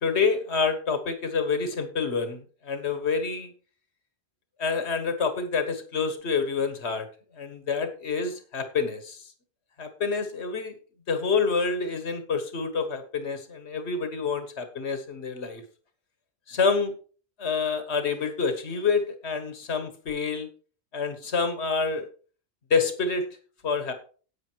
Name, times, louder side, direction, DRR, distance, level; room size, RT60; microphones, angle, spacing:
voice 1, 0.0-3.5 4.6-7.1 7.4-9.3 9.8-10.8 11.1-15.6 16.5-16.9 17.4-20.5 20.9-22.1 22.7-23.2 23.6-23.9, left 5 dB, 85° left, 8 dB, 1.7 m, -27 dB
10.5 x 8.6 x 4.6 m, 0.39 s
omnidirectional pair, 1.1 m